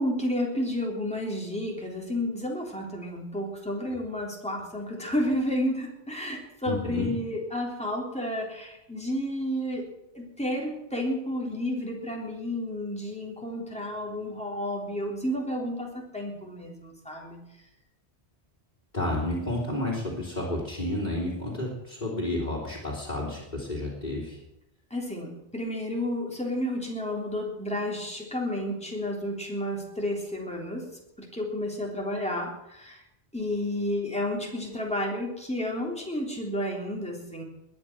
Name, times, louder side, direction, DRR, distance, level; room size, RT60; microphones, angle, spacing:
voice 1, 0.0-9.8 10.2-17.4 24.9-30.9 31.3-32.5 32.8-33.0 33.3-37.4, left 1 dB, 5° left, -2 dB, 3.4 m, -31 dB
voice 2, 6.6-7.1 18.9-24.4, left 1 dB, 45° left, -6 dB, 3.5 m, -31 dB
21.0 x 9.7 x 6.2 m, 0.85 s
omnidirectional pair, 1.1 m